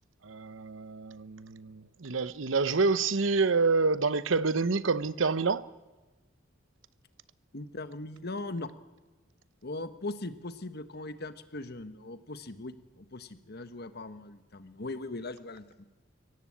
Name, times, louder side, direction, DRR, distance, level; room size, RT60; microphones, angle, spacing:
voice 1, 0.2-5.6, right 4 dB, 80° right, 0.8 m, -27 dB
voice 2, 7.5-8.7 9.6-15.8, left 2 dB, 55° left, 1.5 m, -40 dB
23.5 x 17.5 x 8.7 m
head